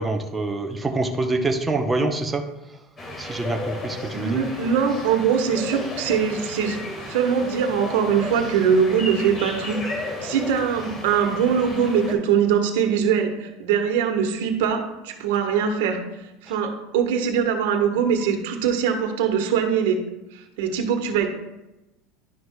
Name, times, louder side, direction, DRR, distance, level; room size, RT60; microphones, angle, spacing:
voice 1, 0.0-2.4 3.2-4.5 16.5-16.6, right 2 dB, 10° right, 3 dB, 0.7 m, -25 dB
sound 1, 3.0-12.1, left 2 dB, 25° left, 1.5 m, -33 dB
voice 2, 4.1-6.8 7.1-16.0 16.4-20.0 20.3-21.3, right 7 dB, 80° right, 5 dB, 1.1 m, -22 dB
11.0 x 6.2 x 2.2 m, 0.96 s
supercardioid pair, 125°, 0 cm